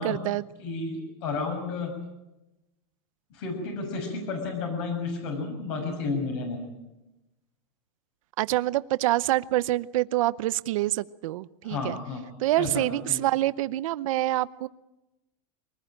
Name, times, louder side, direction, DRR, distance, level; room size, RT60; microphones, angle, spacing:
voice 1, 0.0-0.4 8.4-12.0 12.4-14.7, right 16 dB, 75° right, 16 dB, 0.8 m, -26 dB
voice 2, 0.6-1.9 3.3-6.7 11.6-12.2 12.6-13.2, left 4 dB, 55° left, 2 dB, 6.5 m, -32 dB
23.5 x 19.5 x 8.9 m, 0.97 s
supercardioid pair, 170°, 17 cm